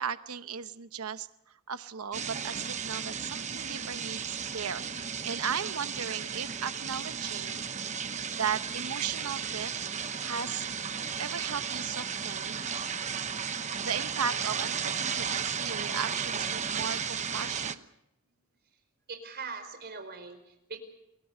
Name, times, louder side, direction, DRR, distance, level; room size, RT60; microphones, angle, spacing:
voice 1, 0.0-7.6 8.3-9.8 10.2-10.7 11.2-12.6 13.8-17.9, right 7 dB, 85° right, 11 dB, 0.9 m, -36 dB
sound 1, 2.1-17.8, right 7 dB, 35° right, 1.0 m, -34 dB
voice 2, 19.1-20.8, right 4 dB, 50° right, 7 dB, 4.8 m, -42 dB
29.0 x 22.5 x 5.6 m, 0.84 s
head